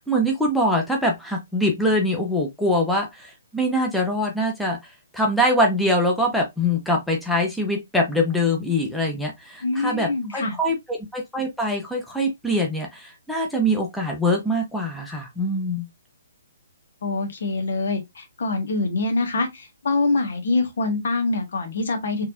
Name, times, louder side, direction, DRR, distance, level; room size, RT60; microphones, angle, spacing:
voice 1, 0.0-15.9, equal, ahead, 1.1 m, -23 dB
voice 2, 9.6-10.6 17.0-22.2, left 3 dB, 60° left, 1.5 m, -25 dB
4.4 x 3.6 x 2.7 m
figure-of-eight pair, 130°, 0 cm